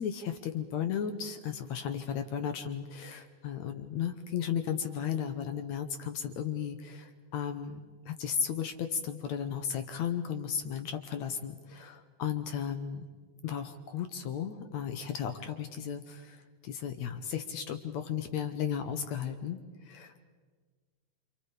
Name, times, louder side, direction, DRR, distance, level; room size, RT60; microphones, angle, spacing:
voice 1, 0.0-13.0 13.4-16.4 16.6-19.6 19.9-20.2, left 8 dB, 65° left, 7 dB, 1.9 m, -35 dB
28.0 x 27.5 x 5.0 m, 1.5 s
omnidirectional pair, 4.3 m